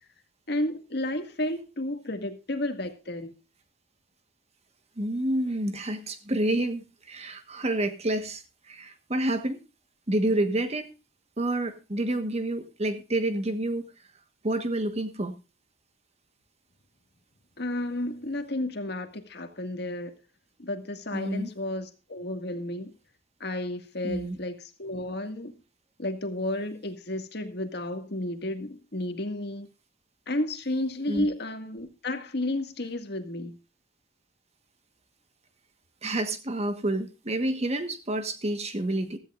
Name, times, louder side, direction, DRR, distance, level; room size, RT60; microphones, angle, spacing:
voice 1, 0.5-3.3 17.6-20.1 20.6-22.9 23.4-25.5 26.0-29.7 30.3-33.6, left 1 dB, 65° left, 1.9 m, -32 dB
voice 2, 5.0-9.6 10.1-10.9 11.4-13.9 14.4-15.3 21.1-21.5 24.0-24.4 31.1-31.3 36.0-39.2, right 1 dB, 35° right, 1.3 m, -29 dB
16.0 x 13.5 x 2.5 m
head